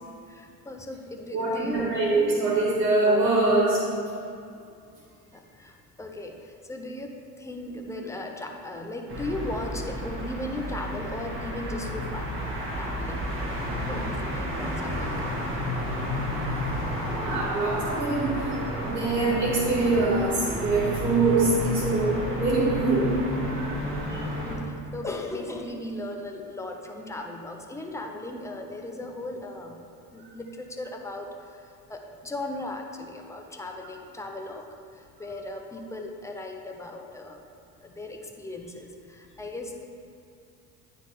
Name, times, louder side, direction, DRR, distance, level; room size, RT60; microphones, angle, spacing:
voice 1, 0.3-1.9 5.3-12.3 12.8-13.3 13.8-15.5 24.1-29.8 30.1-31.3 31.5-31.6 31.9-34.6 34.9-37.4 37.8-39.8, left 2 dB, 5° left, 2 dB, 0.6 m, -37 dB
voice 2, 1.3-3.9 17.0-23.9, right 3 dB, 80° right, -5 dB, 1.5 m, -24 dB
sound 1, 9.1-24.6, equal, 25° right, 1.5 m, -31 dB
9.3 x 3.9 x 3.4 m, 2.4 s
figure-of-eight pair, 60°, 48 cm